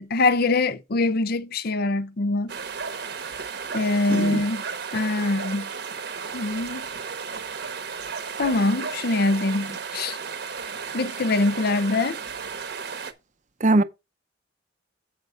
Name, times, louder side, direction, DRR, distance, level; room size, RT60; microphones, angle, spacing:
voice 1, 0.0-2.6 3.7-4.6 4.9-5.7 6.3-6.9 8.4-10.2 10.9-12.2, left 2 dB, 50° left, 0.6 m, -24 dB
sound 1, 2.5-13.1, right 5 dB, 60° right, 1.0 m, -34 dB
voice 2, 4.1-4.4 13.6-13.8, right 2 dB, 40° right, 0.6 m, -20 dB
8.0 x 5.7 x 4.9 m
head